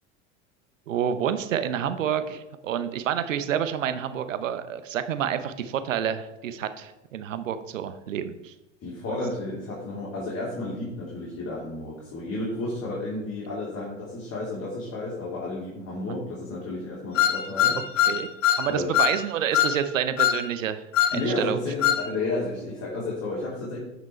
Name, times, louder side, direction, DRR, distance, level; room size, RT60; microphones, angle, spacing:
voice 1, 0.9-8.5 16.0-16.2 18.1-18.3 18.6-20.9 21.1-21.6, right 9 dB, 80° right, 11 dB, 0.8 m, -28 dB
voice 2, 8.8-18.1 18.7-18.9 21.1-23.8, left 2 dB, 40° left, -6 dB, 3.1 m, -32 dB
sound 1, 17.2-18.7 18.9-19.2 19.5-19.8 20.2-20.4 20.9-21.2 21.8-22.0, left 11 dB, 80° left, 0.8 m, -21 dB
9.6 x 5.2 x 4.4 m, 0.93 s
hypercardioid pair, 85°, 38 cm